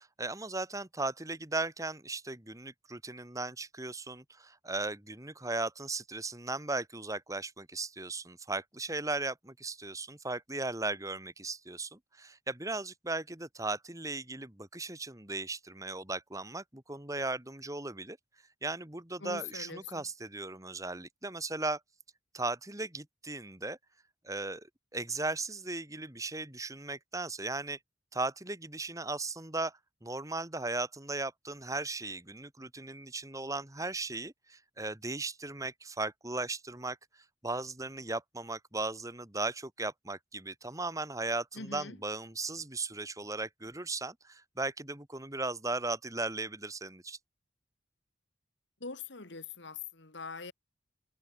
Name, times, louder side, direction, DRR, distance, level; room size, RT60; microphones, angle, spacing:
voice 1, 0.0-18.2 18.6-21.8 22.3-23.8 24.2-27.8 28.1-37.0 37.4-47.2, right 2 dB, 15° right, 2.4 m, -37 dB
voice 2, 19.2-20.1 41.5-42.0 48.8-50.5, left 4 dB, 70° left, 2.3 m, -43 dB
head